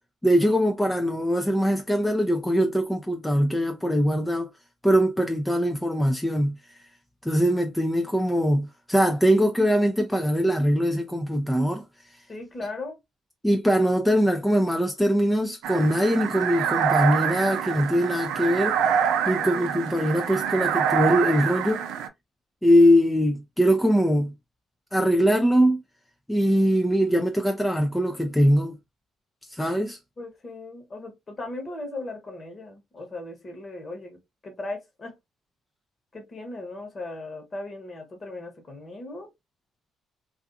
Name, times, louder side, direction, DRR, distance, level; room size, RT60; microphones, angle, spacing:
voice 1, 0.2-4.5 4.8-6.6 7.2-11.8 13.4-18.8 19.3-21.8 22.6-24.3 24.9-25.8 26.3-28.8 29.5-30.0, equal, 5° left, 0.4 m, -22 dB
voice 2, 12.3-13.0 19.3-19.7 30.2-34.2 34.4-35.1 36.1-39.3, left 2 dB, 40° left, 1.2 m, -37 dB
sound 1, 15.6-22.1, right 8 dB, 80° right, 0.4 m, -26 dB
2.5 x 2.3 x 2.5 m
supercardioid pair, 65°, 0 cm